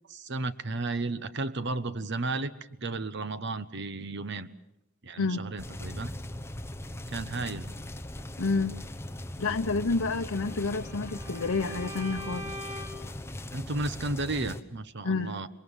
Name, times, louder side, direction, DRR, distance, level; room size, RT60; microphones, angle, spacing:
voice 1, 0.1-2.5 2.8-4.5 5.0-6.1 7.1-7.7 13.5-15.5, right 2 dB, 55° right, 1.1 m, -33 dB
sound 1, 5.6-14.6, left 1 dB, 10° left, 1.1 m, -40 dB
voice 2, 8.4-8.8 9.4-12.5 15.0-15.4, left 3 dB, 85° left, 0.9 m, -29 dB
Bowed string instrument, 10.1-13.1, left 1 dB, 15° right, 2.6 m, -43 dB
27.5 x 22.5 x 7.3 m
head